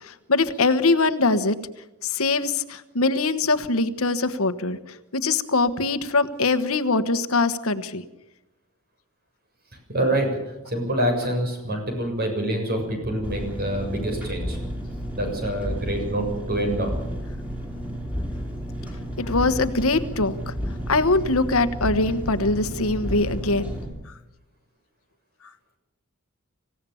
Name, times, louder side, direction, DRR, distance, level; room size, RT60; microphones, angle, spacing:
voice 1, 0.0-1.6 2.0-4.8 5.1-8.0 19.2-20.5 20.9-23.8, left 3 dB, 70° left, 11 dB, 1.3 m, -22 dB
voice 2, 9.9-10.3 10.7-14.6 15.1-17.0, right 1 dB, 45° right, 4 dB, 7.0 m, -26 dB
Engine, 13.2-23.9, equal, 5° right, 6.0 m, -32 dB
26.0 x 16.5 x 7.2 m, 0.98 s
head